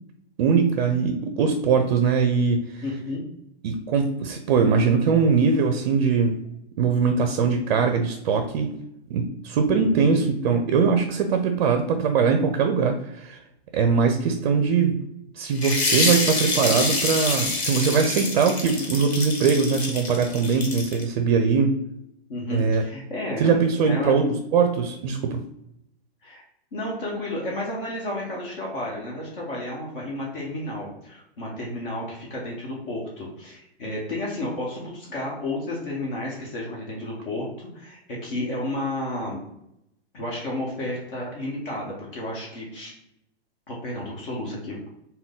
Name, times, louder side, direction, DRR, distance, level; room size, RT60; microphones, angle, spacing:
voice 1, 0.4-2.8 3.6-6.4 6.8-8.7 9.1-13.4 13.7-15.0 15.4-21.8 22.5-22.8 23.4-25.4, right 5 dB, 45° right, 6 dB, 0.4 m, -21 dB
voice 2, 2.8-3.2 9.7-10.1 22.3-23.6 23.8-24.2 26.2-26.4 26.7-39.4 40.1-42.9 43.7-44.8, left 1 dB, 55° left, -3 dB, 1.2 m, -32 dB
sound 1, 15.5-21.0, left 2 dB, 75° left, 1.3 m, -26 dB
3.6 x 2.2 x 3.6 m, 0.80 s
hypercardioid pair, 130°, 32 cm